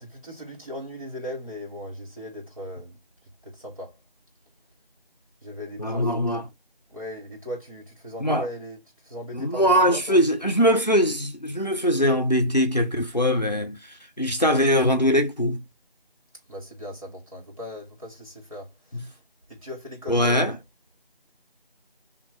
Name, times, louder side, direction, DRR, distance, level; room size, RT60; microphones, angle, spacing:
voice 1, 0.0-3.0 3.4-4.0 5.4-6.4 6.9-10.2 16.5-19.1 19.5-20.5, left 1 dB, 35° right, 1.9 m, -38 dB
voice 2, 5.8-6.5 8.2-8.5 9.3-15.6 18.9-19.1 20.1-20.6, equal, 45° left, 0.6 m, -22 dB
3.3 x 2.8 x 3.7 m
figure-of-eight pair, 180°, 29 cm